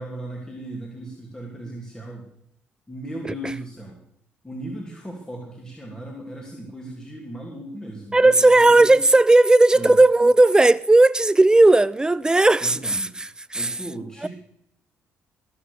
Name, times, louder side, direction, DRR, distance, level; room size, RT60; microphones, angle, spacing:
voice 1, 0.0-2.3 2.9-4.0 4.4-9.0 9.7-10.0 12.6-13.1 13.5-14.3, right 1 dB, 15° left, 2.9 m, -36 dB
voice 2, 8.1-13.8 14.2-14.3, right 2 dB, 15° right, 0.6 m, -16 dB
19.0 x 6.7 x 6.8 m
supercardioid pair, 65°, 5 cm